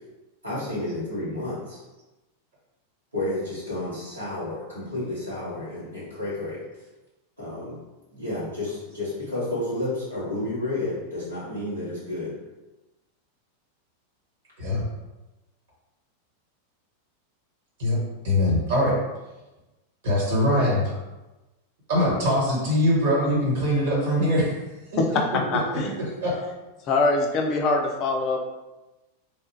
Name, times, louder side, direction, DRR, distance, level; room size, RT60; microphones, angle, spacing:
voice 1, 0.4-1.8 3.1-6.6 7.4-7.8 8.1-12.3, left 2 dB, 85° right, -9 dB, 1.5 m, -31 dB
voice 2, 18.2-18.9 20.0-21.0 21.9-24.6 24.9-26.4, left 1 dB, 55° right, -6 dB, 1.4 m, -23 dB
voice 3, 25.5-26.0 26.8-28.4, left 3 dB, 35° left, 2 dB, 0.5 m, -23 dB
3.3 x 2.3 x 2.9 m, 1.1 s
figure-of-eight pair, 90°, 0 cm